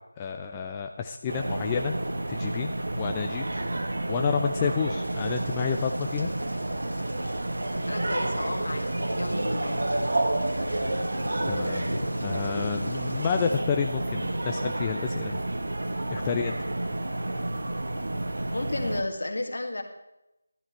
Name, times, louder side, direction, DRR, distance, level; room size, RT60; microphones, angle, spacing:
voice 1, 0.2-1.9 2.3-3.4 4.1-6.3 11.5-11.9 12.2-15.4 16.1-16.6, left 7 dB, 15° left, 4 dB, 0.4 m, -30 dB
sound 1, 1.3-19.0, right 1 dB, 60° right, 1.2 m, -30 dB
sound 2, 5.0-13.6, left 1 dB, 80° left, 1.3 m, -41 dB
voice 2, 7.9-8.9 9.1-9.9 18.5-19.8, left 2 dB, 60° left, 4 dB, 1.8 m, -32 dB
12.0 x 11.0 x 4.5 m, 0.93 s
figure-of-eight pair, 160°, 0 cm